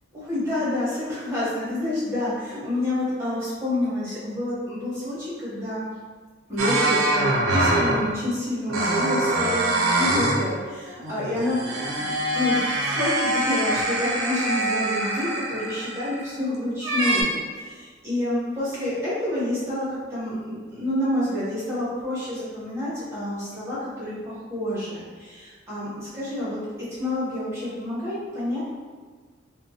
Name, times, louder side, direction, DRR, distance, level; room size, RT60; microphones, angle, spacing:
voice 1, 0.1-5.8 6.5-26.6 26.9-28.6, left 1 dB, 15° right, -11 dB, 0.9 m, -28 dB
sound 1, 6.6-8.1 8.7-10.5 10.8-16.4 16.8-17.2, right 1 dB, 85° right, 0.5 m, -24 dB
2.8 x 2.2 x 2.7 m, 1.5 s
head